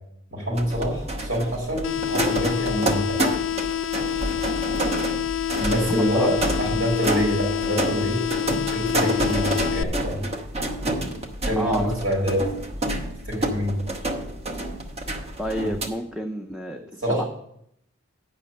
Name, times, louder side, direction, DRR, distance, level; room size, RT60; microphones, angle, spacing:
voice 1, 0.3-3.3 5.5-8.2 8.7-10.2 11.4-12.4 13.3-13.8 15.6-15.7 17.0-17.3, equal, 70° right, -2 dB, 4.6 m, -26 dB
sound 1, 0.6-15.9, right 1 dB, 30° right, 1.0 m, -28 dB
sound 2, 1.8-9.8, left 10 dB, 65° left, 0.4 m, -27 dB
voice 2, 5.8-6.4 11.6-11.9 15.4-17.2, equal, 5° right, 4 dB, 0.4 m, -30 dB
8.9 x 5.8 x 6.3 m, 0.72 s
head